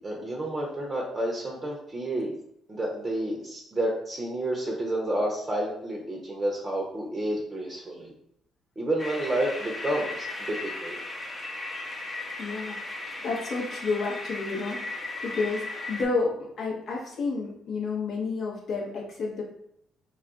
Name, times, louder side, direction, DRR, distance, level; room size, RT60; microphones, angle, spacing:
voice 1, 0.0-2.3 2.7-8.1 8.8-11.0, right 1 dB, 30° right, -1 dB, 0.7 m, -30 dB
sound 1, 9.0-16.1, left 2 dB, 25° left, 0.7 m, -36 dB
voice 2, 12.4-12.8 13.2-19.4, left 4 dB, 60° left, -3 dB, 0.7 m, -30 dB
2.3 x 2.3 x 3.8 m, 0.74 s
hypercardioid pair, 45°, 0 cm